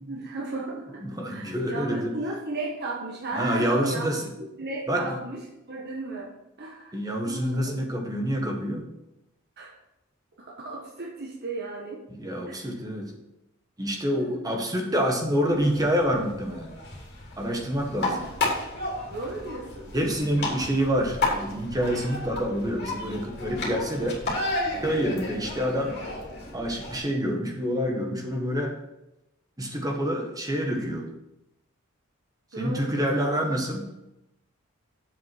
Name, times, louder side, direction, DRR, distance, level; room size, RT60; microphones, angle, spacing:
voice 1, 0.0-4.0 4.4-7.0 7.2-7.7 9.6-9.8 10.4-12.0 12.5-12.7 14.1-14.5 18.1-18.2 19.0-20.0 32.5-33.3, right 2 dB, 50° right, -2 dB, 1.4 m, -35 dB
voice 2, 1.0-2.1 3.3-4.2 4.9-5.2 6.9-8.8 12.1-13.1 13.8-16.7 17.4-18.2 19.9-24.2 24.8-26.0 26.5-28.8 29.6-31.1 32.6-33.9, equal, 20° right, 1 dB, 1.5 m, -27 dB
sound 1, 15.5-27.0, left 2 dB, 50° left, 3.0 m, -33 dB
7.8 x 5.9 x 6.1 m, 0.89 s
head